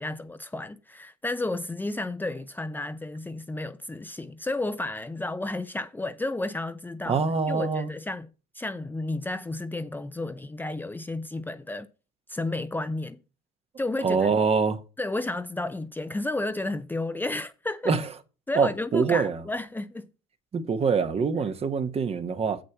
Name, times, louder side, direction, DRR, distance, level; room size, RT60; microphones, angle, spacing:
voice 1, 0.0-7.2 7.5-8.3 8.5-11.9 12.3-13.2 13.8-14.3 15.0-17.9 18.5-20.1, left 2 dB, 10° left, 0.7 m, -32 dB
voice 2, 7.1-7.9 14.0-14.8 17.8-18.0 18.5-19.4 20.5-22.6, right 5 dB, 35° right, 1.3 m, -24 dB
7.8 x 6.6 x 5.8 m
hypercardioid pair, 75°, 17 cm